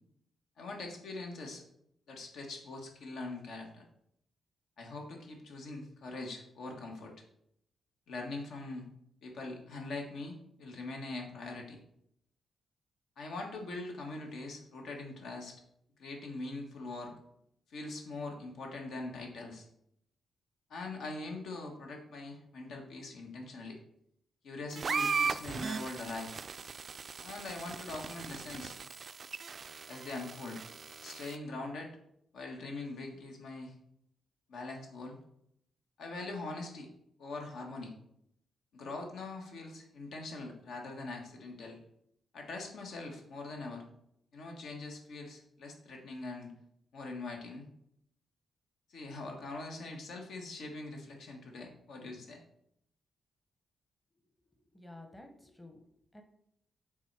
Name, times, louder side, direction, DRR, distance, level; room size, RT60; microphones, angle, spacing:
voice 1, 0.6-1.6 2.1-3.8 4.8-7.1 8.1-8.9 9.2-11.8 13.2-15.6 16.0-17.1 17.7-19.7 20.7-23.8 24.4-26.3 27.2-28.7 29.9-30.6 31.0-31.9 32.3-33.7 34.5-35.1 36.0-36.9 37.2-37.9 38.7-41.8 42.3-43.8 44.3-46.5 46.9-47.7 48.9-52.4, left 2 dB, 80° left, 2 dB, 1.5 m, -42 dB
sound 1, 24.7-31.3, right 5 dB, 40° right, 0.3 m, -38 dB
voice 2, 54.5-55.8 56.1-56.2, left 1 dB, 10° left, 4 dB, 0.8 m, -52 dB
7.2 x 3.9 x 4.7 m, 0.75 s
cardioid pair, 130°, 0 cm